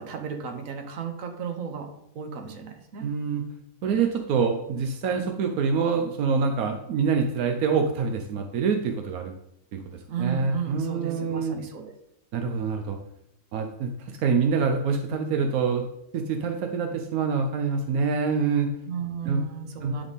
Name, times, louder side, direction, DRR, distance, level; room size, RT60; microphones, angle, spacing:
voice 1, 0.0-3.1 10.1-11.9 18.9-20.1, right 7 dB, 70° right, 5 dB, 1.3 m, -34 dB
voice 2, 3.0-3.4 3.8-9.3 9.7-9.8 10.2-11.6 12.3-13.0 13.5-15.8 16.1-18.7 19.2-19.4 19.8-19.9, right 5 dB, 85° right, 4 dB, 1.2 m, -25 dB
10.5 x 3.6 x 4.1 m, 0.77 s
omnidirectional pair, 1.5 m